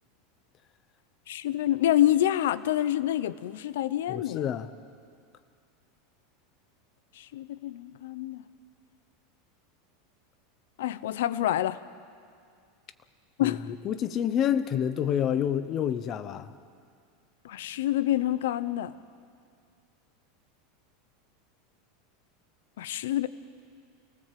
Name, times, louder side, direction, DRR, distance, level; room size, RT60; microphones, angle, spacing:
voice 1, 1.3-4.5 7.2-8.4 10.8-11.8 13.4-13.7 17.4-19.0 22.8-23.3, left 13 dB, 80° left, 16 dB, 0.8 m, -27 dB
voice 2, 4.1-4.7 13.4-13.6 13.8-16.5, left 9 dB, 30° left, 12 dB, 0.8 m, -28 dB
29.5 x 19.0 x 7.6 m, 2.2 s
supercardioid pair, 165°, 0 cm